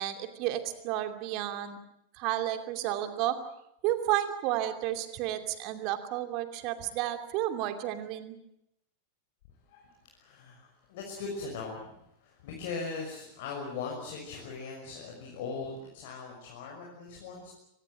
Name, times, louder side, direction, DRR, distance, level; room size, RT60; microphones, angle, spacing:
voice 1, 0.0-1.8 2.1-3.4 3.8-8.4, right 13 dB, 40° right, 7 dB, 2.7 m, -32 dB
voice 2, 9.7-17.5, left 4 dB, 50° left, -1 dB, 6.2 m, -40 dB
24.5 x 20.0 x 9.0 m, 0.79 s
figure-of-eight pair, 90°, 0 cm